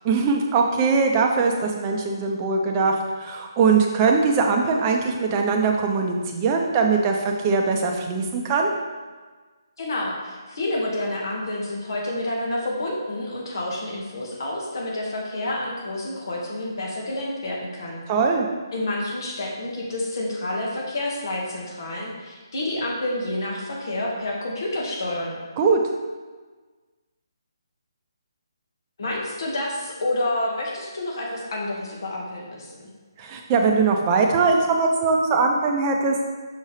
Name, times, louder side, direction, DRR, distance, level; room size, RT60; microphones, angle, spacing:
voice 1, 0.0-8.7 18.1-18.5 25.6-25.8 33.2-36.2, right 4 dB, 25° right, 2 dB, 0.7 m, -21 dB
voice 2, 9.8-18.0 18.7-25.4 29.0-32.9, left 1 dB, 60° left, -2 dB, 1.6 m, -29 dB
6.2 x 5.5 x 3.3 m, 1.4 s
figure-of-eight pair, 145°, 2 cm